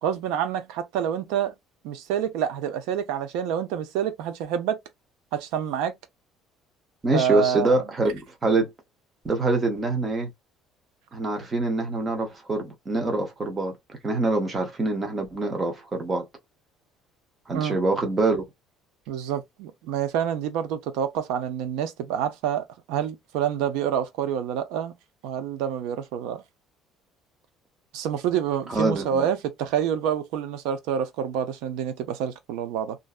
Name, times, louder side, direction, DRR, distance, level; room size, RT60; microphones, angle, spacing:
voice 1, 0.0-1.5 1.8-4.8 5.3-5.9 7.1-7.8 17.5-17.8 19.1-24.9 25.2-26.4 27.9-33.0, right 9 dB, 85° right, 0.6 m, -27 dB
voice 2, 7.0-8.7 9.2-10.3 11.1-13.7 14.0-16.2 17.5-18.4 28.7-29.3, right 2 dB, 20° right, 0.9 m, -25 dB
2.6 x 2.2 x 2.4 m
cardioid pair, 145°, 0 cm